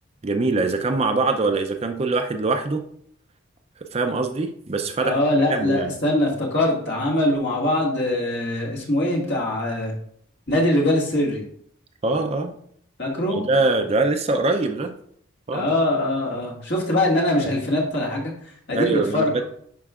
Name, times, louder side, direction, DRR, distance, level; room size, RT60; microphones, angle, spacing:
voice 1, 0.2-2.8 3.9-5.1 5.5-5.9 12.0-12.5 13.4-14.9 15.5-15.7 18.7-19.4, right 3 dB, 30° right, 6 dB, 0.4 m, -23 dB
voice 2, 5.0-9.9 10.5-11.4 13.0-13.4 15.5-18.3 18.7-19.5, left 1 dB, 55° left, -3 dB, 1.8 m, -22 dB
10.5 x 4.4 x 2.4 m, 0.64 s
head